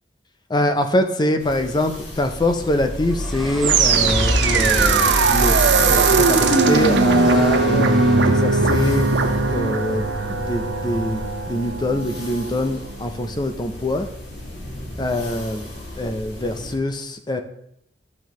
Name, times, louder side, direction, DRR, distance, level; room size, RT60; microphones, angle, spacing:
voice 1, 0.5-5.6 5.9-9.1 9.5-11.2 11.5-14.1 15.0-17.4, left 1 dB, 25° left, 7 dB, 0.6 m, -24 dB
sound 1, 1.4-16.7, left 1 dB, 75° left, 2.4 m, -37 dB
sound 2, 2.6-8.5, equal, ahead, 1.1 m, -26 dB
sound 3, 3.6-12.8, right 4 dB, 85° right, 0.8 m, -19 dB
10.5 x 7.0 x 3.1 m, 0.76 s
head